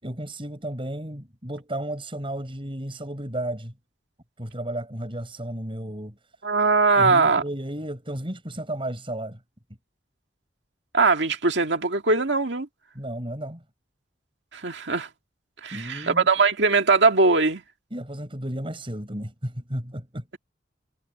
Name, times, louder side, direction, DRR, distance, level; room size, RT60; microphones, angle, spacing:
voice 1, 0.0-3.7 4.4-6.2 7.0-9.4 12.9-13.6 15.7-16.3 17.9-20.2, right 1 dB, 30° right, 7.9 m, -33 dB
voice 2, 6.4-7.4 10.9-12.7 14.5-15.1 15.6-17.6, right 4 dB, 75° right, 2.1 m, -21 dB
head